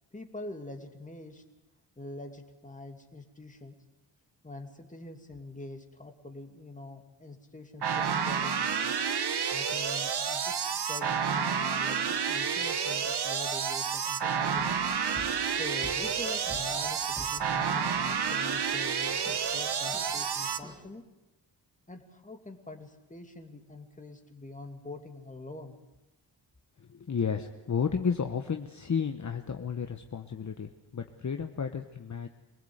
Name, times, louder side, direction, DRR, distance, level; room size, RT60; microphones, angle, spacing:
voice 1, 0.1-1.4 2.0-3.8 4.4-8.9 9.5-14.8 15.5-21.0 21.9-25.8, left 2 dB, 15° left, 4 dB, 2.6 m, -44 dB
sound 1, 7.8-20.6, right 6 dB, 60° right, 1.3 m, -30 dB
sound 2, 14.6-20.9, equal, 10° right, 2.3 m, -50 dB
voice 2, 26.8-32.3, left 6 dB, 40° left, 6 dB, 1.1 m, -32 dB
24.5 x 18.0 x 8.0 m, 0.99 s
wide cardioid pair, 100°, 44 cm